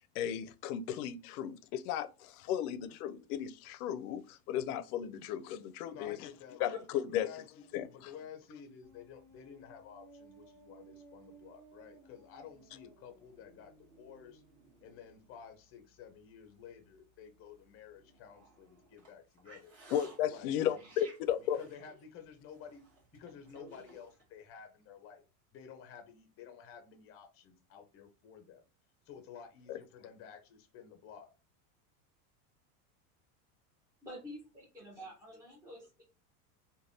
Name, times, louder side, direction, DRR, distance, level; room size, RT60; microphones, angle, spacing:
voice 1, 0.1-6.2 6.6-7.3 7.7-7.9 19.9-21.6 29.7-29.8, left 10 dB, 75° left, 0.5 m, -35 dB
voice 2, 5.9-6.8 7.1-14.4 14.8-19.7 20.3-20.9 21.4-22.8 23.1-25.2 25.5-28.7 29.1-31.3, left 7 dB, 30° left, 0.6 m, -52 dB
sound 1, 8.8-24.2, right 2 dB, 35° right, 1.2 m, -60 dB
voice 3, 34.0-36.0, equal, 10° right, 0.8 m, -49 dB
3.2 x 2.2 x 2.6 m
supercardioid pair, 140°, 45 cm